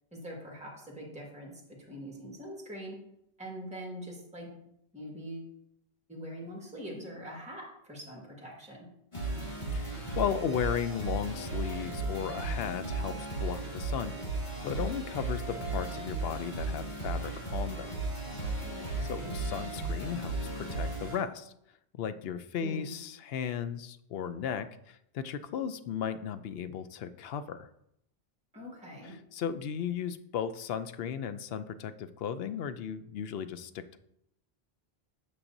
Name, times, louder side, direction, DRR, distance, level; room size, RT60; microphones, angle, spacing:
voice 1, 0.1-1.5 1.8-3.0 3.4-4.5 4.9-5.5 6.1-8.9 18.6-19.3 22.6-22.9 28.5-29.2, equal, 5° right, -2 dB, 1.7 m, -43 dB
sound 1, 9.1-21.2, right 2 dB, 45° left, 2.0 m, -35 dB
voice 2, 9.7-14.1 14.6-17.9 18.7-21.5 22.0-27.7 29.0-34.0, left 8 dB, 70° left, 12 dB, 0.8 m, -36 dB
8.7 x 6.4 x 2.7 m, 0.76 s
omnidirectional pair, 1.1 m